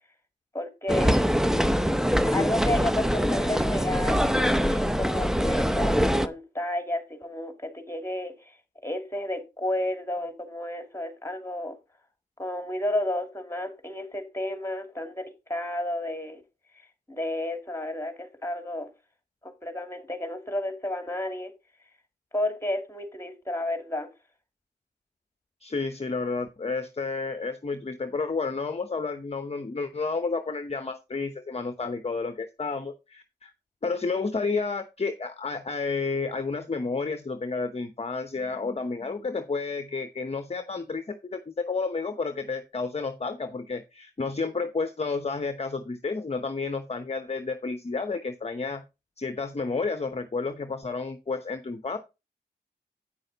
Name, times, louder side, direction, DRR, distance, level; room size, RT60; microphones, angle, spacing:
voice 1, 0.5-1.3 2.3-8.6 8.8-11.8 12.4-16.4 17.1-18.9 19.4-21.5 22.3-24.1, left 1 dB, 15° left, 2.6 m, -32 dB
sound 1, 0.9-6.3, equal, 5° right, 0.7 m, -23 dB
voice 2, 25.6-33.5 33.8-48.8 49.2-52.0, left 4 dB, 35° left, 0.9 m, -31 dB
9.0 x 6.4 x 4.0 m
cardioid pair, 55°, 18 cm